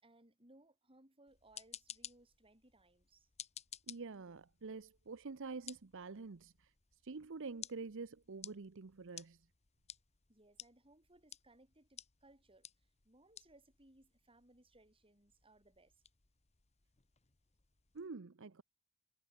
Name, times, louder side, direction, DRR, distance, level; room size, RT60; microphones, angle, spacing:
voice 1, 0.0-3.3 10.3-12.7 13.0-16.0, right 2 dB, 25° right, 7.7 m, -66 dB
sound 1, 1.3-18.1, left 9 dB, 30° left, 1.2 m, -56 dB
voice 2, 3.9-6.7 7.0-9.4 17.9-18.6, right 4 dB, 60° right, 0.7 m, -47 dB
head